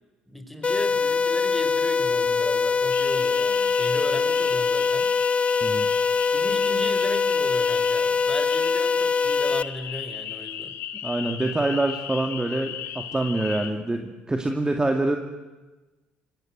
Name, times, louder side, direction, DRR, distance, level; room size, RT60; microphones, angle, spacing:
voice 1, 0.3-5.1 6.3-10.8, equal, ahead, 7 dB, 5.3 m, -36 dB
sound 1, 0.6-9.6, left 5 dB, 30° left, 0.8 m, -23 dB
sound 2, 2.9-13.7, left 10 dB, 60° left, 2.3 m, -36 dB
voice 2, 11.0-15.2, right 2 dB, 15° right, 5 dB, 2.3 m, -25 dB
26.0 x 20.5 x 8.0 m, 1.1 s
hypercardioid pair, 55°, 4 cm